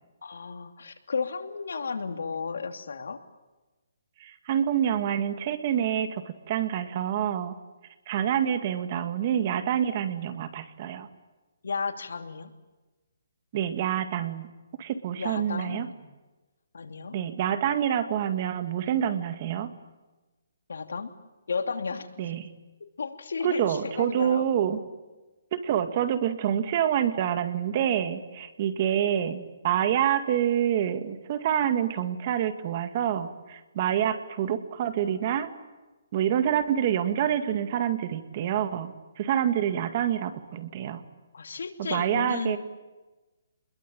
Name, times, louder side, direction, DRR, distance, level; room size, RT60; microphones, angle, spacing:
voice 1, 0.2-3.2 11.6-12.5 15.2-16.0 16.7-17.1 20.7-21.1 21.5-22.1 23.0-24.4 41.3-42.6, left 5 dB, 80° left, 7 dB, 2.9 m, -33 dB
voice 2, 4.2-7.6 8.1-11.1 13.5-14.5 14.8-15.9 17.1-19.7 22.2-22.5 23.4-24.8 25.5-35.5 36.1-41.0 41.8-42.6, right 10 dB, 35° right, 10 dB, 2.0 m, -27 dB
29.0 x 22.0 x 9.1 m, 1.2 s
hypercardioid pair, 165°, 0 cm